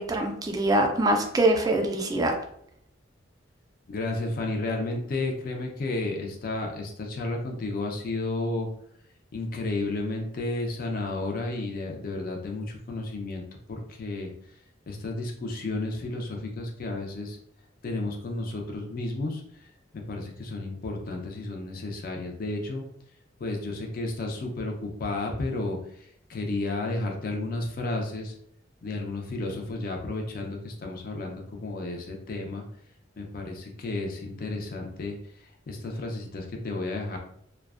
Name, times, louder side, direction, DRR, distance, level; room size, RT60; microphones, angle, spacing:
voice 1, 0.0-2.3, right 1 dB, 20° right, 3 dB, 0.3 m, -24 dB
voice 2, 3.9-8.7 9.3-13.4 13.7-14.3 14.9-17.4 17.8-19.7 19.9-22.8 23.4-28.3 28.8-32.7 33.2-37.2, left 2 dB, 50° left, 2 dB, 0.4 m, -32 dB
2.4 x 2.1 x 2.3 m, 0.70 s
head